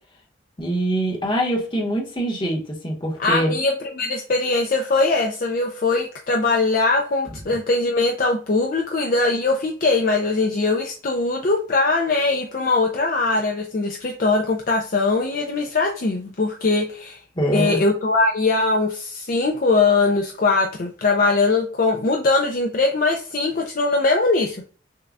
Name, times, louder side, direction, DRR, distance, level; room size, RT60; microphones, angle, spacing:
voice 1, 0.6-3.5 17.4-17.8, right 1 dB, 25° left, -1 dB, 1.0 m, -24 dB
voice 2, 3.2-17.2 17.5-24.6, left 3 dB, 45° left, 1 dB, 0.5 m, -21 dB
6.5 x 2.3 x 2.4 m, 0.40 s
head